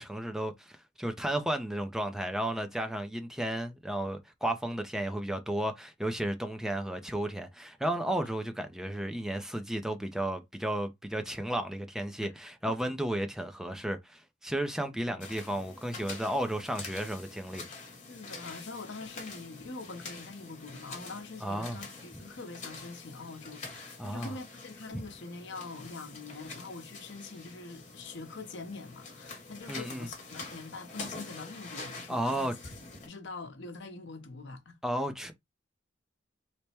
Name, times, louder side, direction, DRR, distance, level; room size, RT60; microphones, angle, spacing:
voice 1, 0.0-17.6 21.4-21.8 24.0-24.3 29.7-30.1 32.1-32.5 34.8-35.3, right 1 dB, 5° right, 0.4 m, -33 dB
voice 2, 14.9-15.2 18.1-32.5 33.1-34.8, left 3 dB, 70° left, 0.8 m, -44 dB
sound 1, 15.2-33.1, left 3 dB, 40° left, 1.2 m, -46 dB
3.3 x 2.1 x 4.2 m
head